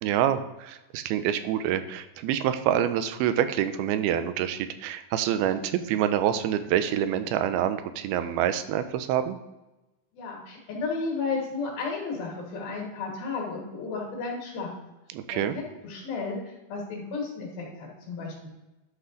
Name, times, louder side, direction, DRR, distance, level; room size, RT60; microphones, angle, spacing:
voice 1, 0.0-9.4 15.1-15.5, right 10 dB, 85° right, 10 dB, 2.5 m, -26 dB
voice 2, 10.1-14.7 15.3-18.5, left 4 dB, 75° left, -2 dB, 3.6 m, -33 dB
11.5 x 5.6 x 3.8 m, 1.0 s
omnidirectional pair, 4.4 m